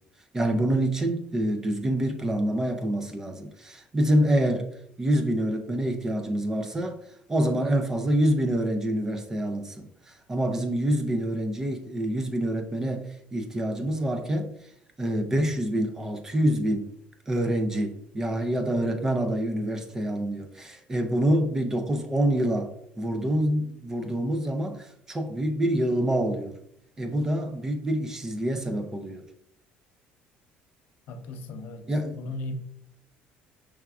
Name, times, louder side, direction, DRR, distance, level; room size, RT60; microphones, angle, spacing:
voice 1, 0.3-4.7 5.0-7.0 7.3-14.5 15.0-16.9 17.3-26.6 27.0-29.2 31.9-32.2, right 1 dB, 15° right, 0.4 m, -26 dB
voice 2, 31.1-32.5, left 2 dB, 65° left, 0.6 m, -37 dB
5.7 x 3.4 x 2.3 m
cardioid pair, 175°, 3 cm